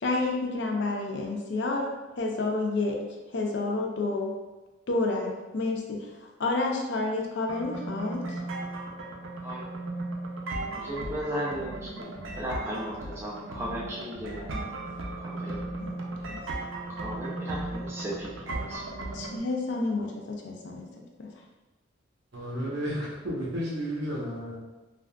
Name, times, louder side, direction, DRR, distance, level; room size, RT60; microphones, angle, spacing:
voice 1, 0.0-1.9 2.2-3.0 3.3-4.3 4.9-8.4 15.8-15.9 19.1-20.9 21.2-21.3, left 3 dB, 60° left, 0 dB, 0.4 m, -29 dB
sound 1, 7.5-19.4, right 2 dB, 80° right, 0.5 m, -36 dB
voice 2, 10.8-14.5 15.2-15.6 16.9-18.8, equal, 15° right, -6 dB, 0.4 m, -36 dB
voice 3, 22.3-24.6, equal, 60° right, -5 dB, 0.9 m, -32 dB
3.4 x 2.4 x 2.2 m, 1.1 s
head